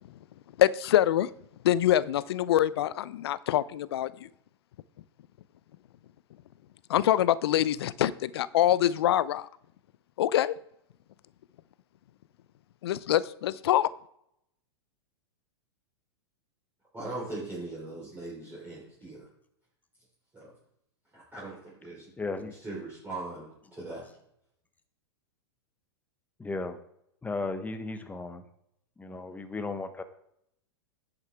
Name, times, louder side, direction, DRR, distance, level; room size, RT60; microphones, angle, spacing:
voice 1, 0.6-1.3 1.6-4.3 6.9-9.5 10.2-10.5 12.8-13.9, left 12 dB, 65° left, 18 dB, 0.5 m, -25 dB
voice 2, 16.9-19.3 20.3-20.5 21.1-22.1 22.5-24.1, right 2 dB, 15° right, -7 dB, 4.0 m, -40 dB
voice 3, 22.2-22.5 26.4-26.8 27.2-28.4 29.0-30.0, left 3 dB, 10° left, 9 dB, 1.1 m, -35 dB
10.5 x 8.0 x 3.5 m, 0.74 s
hypercardioid pair, 105°, 14 cm